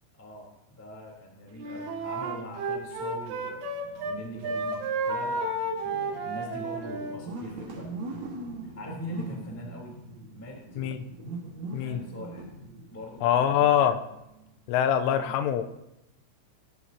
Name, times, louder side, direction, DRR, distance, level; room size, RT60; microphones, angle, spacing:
voice 1, 0.2-3.6 4.0-7.9 8.6-9.9 10.3-10.6 11.7-12.5 12.9-13.7 14.8-15.4, left 1 dB, 5° left, -2 dB, 2.2 m, -42 dB
sound 1, 1.3-14.7, right 3 dB, 60° right, 1.9 m, -43 dB
Wind instrument woodwind instrument, 1.6-4.2 4.4-7.2, right 2 dB, 75° right, 3.9 m, -32 dB
voice 2, 13.2-14.0 14.7-15.6, left 9 dB, 85° left, 10 dB, 3.0 m, -23 dB
21.0 x 11.0 x 2.9 m, 0.89 s
omnidirectional pair, 5.9 m